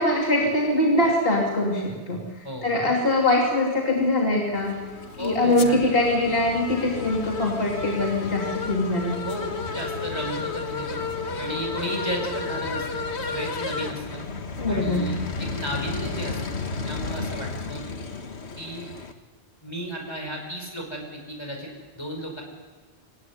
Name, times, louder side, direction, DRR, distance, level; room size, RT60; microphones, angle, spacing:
voice 1, 0.0-4.7 5.2-9.2 14.6-15.1, left 1 dB, 60° left, -2 dB, 3.3 m, -23 dB
sound 1, 4.5-19.1, left 4 dB, 85° left, 1.7 m, -32 dB
voice 2, 5.2-6.0 9.2-11.0 11.4-14.2 14.7-16.6 16.8-17.8 18.6-18.9 19.6-22.4, equal, 25° left, 1 dB, 5.1 m, -34 dB
25.5 x 16.5 x 9.7 m, 1.3 s
omnidirectional pair, 1.1 m